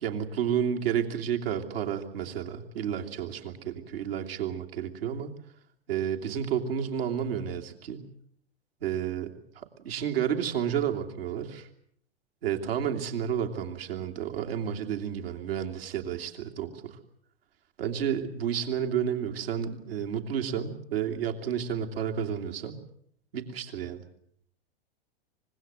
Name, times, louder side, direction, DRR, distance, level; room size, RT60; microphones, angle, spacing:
voice 1, 0.0-5.3 5.9-8.0 8.8-11.7 12.4-17.0 17.8-22.8 23.3-24.0, right 8 dB, 70° right, 3 dB, 2.9 m, -31 dB
25.0 x 21.0 x 8.0 m, 0.68 s
hypercardioid pair, 95°, 31 cm